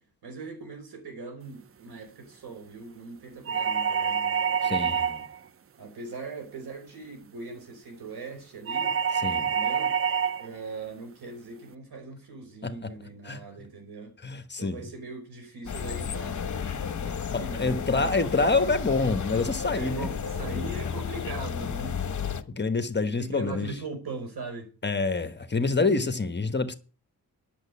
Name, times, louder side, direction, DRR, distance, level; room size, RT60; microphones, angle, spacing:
voice 1, 0.2-4.9 5.8-9.0 9.4-10.0 10.4-14.1 14.6-16.4 17.0-18.2 19.7-22.0 23.0-24.7, right 3 dB, 85° right, 5.1 m, -40 dB
sound 1, 3.5-5.4 8.7-10.5, right 7 dB, 35° right, 0.5 m, -26 dB
voice 2, 4.6-5.2 9.2-9.5 12.6-12.7 13.2-13.4 14.2-14.8 17.3-20.1 22.3-23.7 24.8-26.7, left 3 dB, 30° left, 1.2 m, -27 dB
sound 2, 15.7-22.4, left 7 dB, 50° left, 1.1 m, -32 dB
10.5 x 6.8 x 8.3 m
wide cardioid pair, 130°, 38 cm